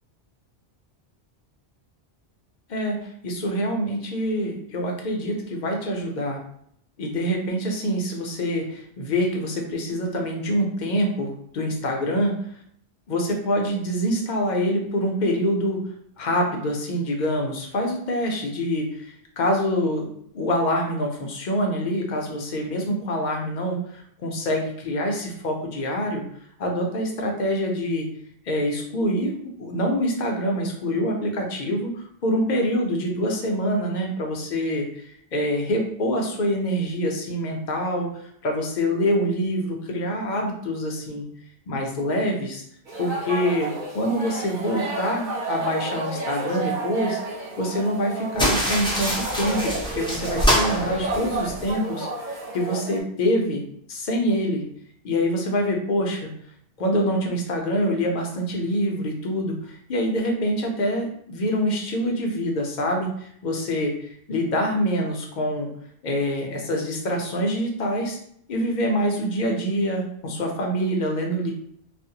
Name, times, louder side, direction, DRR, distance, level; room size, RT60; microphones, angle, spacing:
voice 1, 2.7-6.4 7.0-12.3 13.1-15.8 16.2-20.1 20.3-26.2 26.6-28.1 28.5-41.2 41.7-42.6 43.0-47.2 47.6-53.6 53.9-54.6 55.0-56.3 56.8-65.7 66.0-68.2 68.5-71.5, equal, 55° left, 1 dB, 0.6 m, -25 dB
sound 1, 42.9-53.0, right 2 dB, 55° right, 0.7 m, -31 dB
sound 2, 48.3-51.7, equal, 10° left, 0.3 m, -25 dB
2.5 x 2.0 x 2.7 m, 0.66 s
omnidirectional pair, 1.1 m